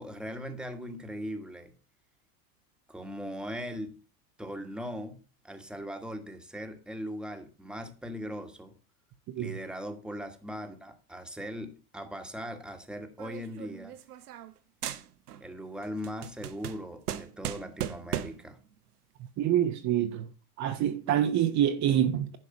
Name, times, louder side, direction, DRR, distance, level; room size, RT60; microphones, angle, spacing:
voice 1, 0.0-1.7 2.9-4.0 4.4-8.7 9.4-14.0 15.4-18.6, equal, ahead, 1.4 m, -39 dB
sound 1, 13.2-14.6 14.8-15.5 15.8-18.5, right 11 dB, 85° right, 1.0 m, -37 dB
voice 2, 19.4-20.3 20.6-22.4, right 10 dB, 40° right, 0.9 m, -26 dB
11.0 x 4.8 x 5.7 m
hypercardioid pair, 100°, 45 cm